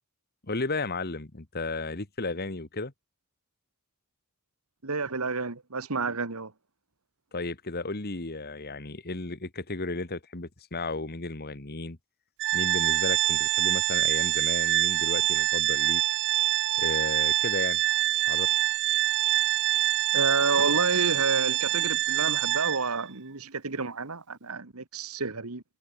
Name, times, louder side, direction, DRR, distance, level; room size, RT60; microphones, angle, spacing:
voice 1, 0.4-2.9 7.3-12.0 12.5-16.0 16.8-17.8 18.3-18.5, left 3 dB, 45° left, 1.9 m, -34 dB
voice 2, 4.8-6.5 20.1-25.6, right 4 dB, 80° right, 1.7 m, -29 dB
Organ, 12.4-23.1, right 14 dB, 55° right, 0.4 m, -25 dB
head